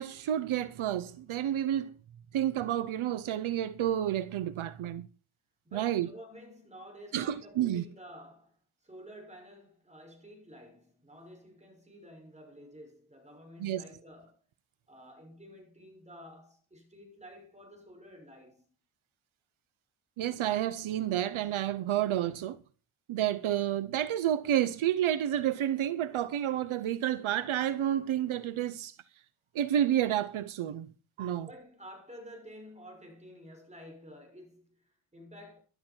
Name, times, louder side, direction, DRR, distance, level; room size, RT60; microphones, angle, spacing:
voice 1, 0.0-2.0 2.3-5.1 5.7-6.1 7.1-7.8 13.6-13.8 20.2-22.6 23.1-29.0 29.5-30.9 31.2-31.5, right 11 dB, 75° right, 0.9 m, -30 dB
voice 2, 5.6-14.4 14.9-18.7 31.5-35.6, equal, 15° right, 6.2 m, -51 dB
13.5 x 12.0 x 4.5 m
wide cardioid pair, 130°, 49 cm